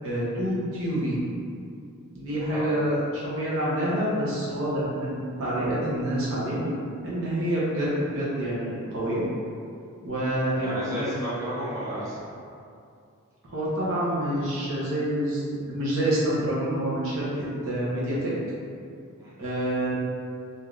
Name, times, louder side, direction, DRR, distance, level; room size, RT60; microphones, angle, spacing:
voice 1, 0.0-1.2 2.1-6.7 7.0-9.2 10.0-11.1 13.5-17.3 17.6-18.3 19.4-19.9, right 1 dB, 65° right, -8 dB, 0.9 m, -27 dB
voice 2, 10.6-12.3 19.2-19.4, equal, 15° right, -11 dB, 0.7 m, -33 dB
3.4 x 2.7 x 2.4 m, 2.5 s
head